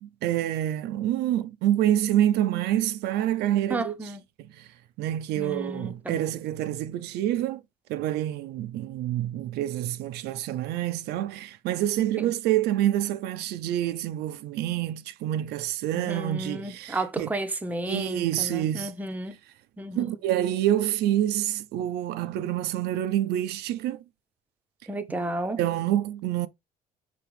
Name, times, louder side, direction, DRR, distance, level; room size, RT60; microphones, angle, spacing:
voice 1, 0.0-4.0 4.4-4.7 5.0-7.6 7.9-17.3 17.8-18.9 19.9-24.0 25.1-25.2 25.6-26.5, right 12 dB, 80° right, 0.4 m, -27 dB
voice 2, 3.7-4.2 5.4-6.2 12.2-12.3 15.9-19.3 19.8-20.1 24.9-25.6, right 2 dB, 10° right, 0.6 m, -32 dB
5.0 x 2.9 x 3.1 m
cardioid pair, 110°, 17 cm